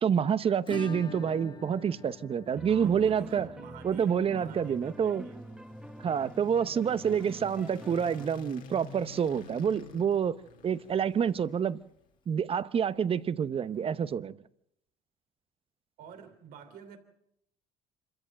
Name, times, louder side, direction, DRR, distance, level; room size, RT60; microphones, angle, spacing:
voice 1, 0.0-3.5 3.8-5.2 6.0-11.8 12.3-14.4, right 7 dB, 40° right, 0.8 m, -28 dB
Acoustic guitar / Strum, 0.7-9.3 9.5-9.6 9.9-10.0 10.4-10.5 12.5-12.6 13.8-13.9, left 6 dB, 30° left, 1.3 m, -48 dB
sound 1, 2.5-8.3, right 1 dB, 5° right, 1.2 m, -46 dB
voice 2, 2.7-5.7 6.0-6.3 7.1-7.3 16.0-17.0, right 8 dB, 75° right, 3.1 m, -49 dB
sound 2, 3.7-12.1, left 5 dB, 65° left, 2.8 m, -50 dB
26.5 x 14.0 x 7.7 m
supercardioid pair, 90°, 15 cm